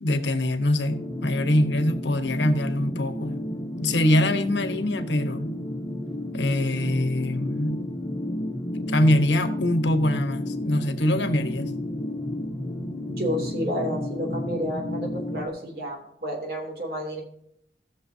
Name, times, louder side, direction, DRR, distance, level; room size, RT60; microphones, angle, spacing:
voice 1, 0.0-3.3 3.8-5.5 6.3-7.8 8.9-11.7, left 1 dB, 85° left, 1.1 m, -23 dB
sound 1, 0.9-15.5, left 1 dB, 20° left, 1.1 m, -31 dB
voice 2, 13.1-17.2, equal, 55° right, 2.9 m, -31 dB
18.0 x 7.1 x 2.8 m
head